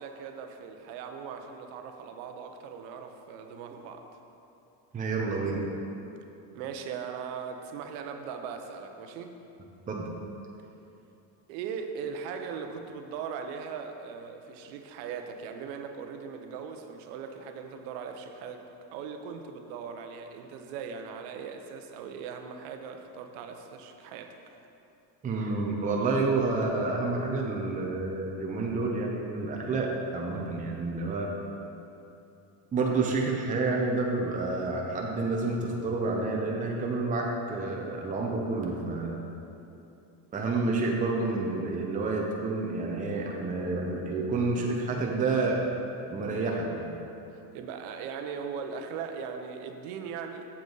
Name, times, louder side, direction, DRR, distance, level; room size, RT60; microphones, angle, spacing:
voice 1, 0.0-4.0 6.5-9.4 11.5-24.4 47.5-50.5, right 6 dB, 80° right, 5 dB, 0.9 m, -39 dB
voice 2, 4.9-5.6 9.9-10.1 25.2-31.3 32.7-39.2 40.3-45.7 46.1-46.9, right 3 dB, 15° right, -1 dB, 0.7 m, -29 dB
7.4 x 7.2 x 3.9 m, 2.9 s
cardioid pair, 135°, 48 cm